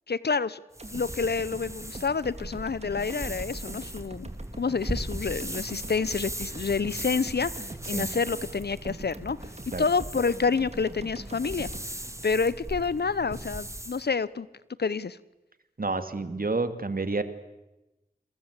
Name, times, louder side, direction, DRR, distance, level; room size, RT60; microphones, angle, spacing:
voice 1, 0.1-0.6 0.9-4.3 4.6-9.4 9.8-11.7 12.2-14.5 14.8-15.2, left 5 dB, 85° left, 18 dB, 0.9 m, -28 dB
sound 1, 0.7-14.0, right 1 dB, 20° right, 1.9 m, -39 dB
sound 2, 0.8-13.0 13.4-13.5, right 2 dB, 40° right, 2.8 m, -43 dB
voice 2, 15.8-17.2, right 3 dB, 65° right, 9 dB, 2.3 m, -29 dB
28.5 x 22.0 x 8.3 m, 1.0 s
wide cardioid pair, 50°, 16 cm